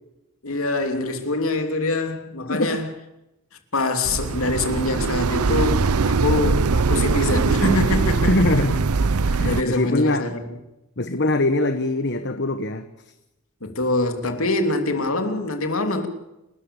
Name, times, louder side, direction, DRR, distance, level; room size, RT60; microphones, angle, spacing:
voice 1, 0.4-2.9 3.7-8.4 9.3-10.4 13.6-16.1, left 2 dB, 70° left, 3.1 m, -24 dB
sound 1, 4.0-9.6, right 4 dB, 85° right, 0.7 m, -21 dB
voice 2, 8.3-8.9 9.4-10.3 11.0-12.9, left 2 dB, 50° left, 1.2 m, -22 dB
30.0 x 13.5 x 7.2 m
head